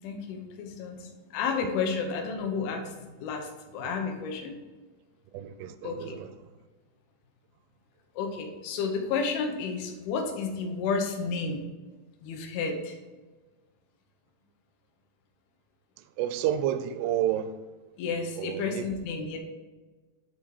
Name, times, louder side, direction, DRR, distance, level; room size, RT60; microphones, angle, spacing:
voice 1, 0.0-4.6 5.8-6.2 8.2-11.6 12.2-13.0 18.0-19.4, left 5 dB, 75° left, 2.7 m, -31 dB
voice 2, 5.3-6.3 16.2-17.5 18.4-18.9, right 11 dB, 85° right, 2.5 m, -30 dB
9.5 x 4.2 x 4.7 m
omnidirectional pair, 4.6 m